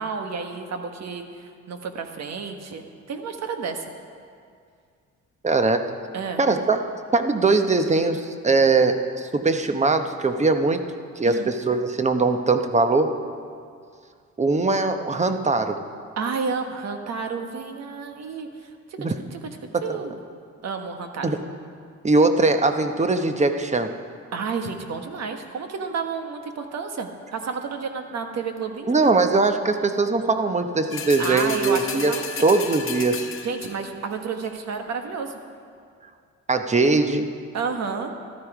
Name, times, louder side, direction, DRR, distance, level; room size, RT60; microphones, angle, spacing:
voice 1, 0.0-3.8 6.1-6.4 11.2-11.5 16.2-19.0 19.3-19.4 19.8-20.2 20.6-21.3 24.3-29.0 31.2-32.5 33.4-35.3 37.5-38.1, right 5 dB, 60° right, 5 dB, 1.4 m, -31 dB
voice 2, 5.4-5.8 6.4-6.8 7.1-10.8 11.2-13.1 14.4-15.8 19.0-19.2 19.7-20.0 21.2-21.4 22.0-23.9 28.9-32.1 32.4-33.2 36.5-37.3, right 3 dB, 25° right, 7 dB, 0.9 m, -21 dB
sound 1, 30.9-34.0 34.4-34.5, left 5 dB, 45° left, 1.3 m, -33 dB
13.5 x 12.0 x 4.9 m, 2.2 s
cardioid pair, 90°, 30 cm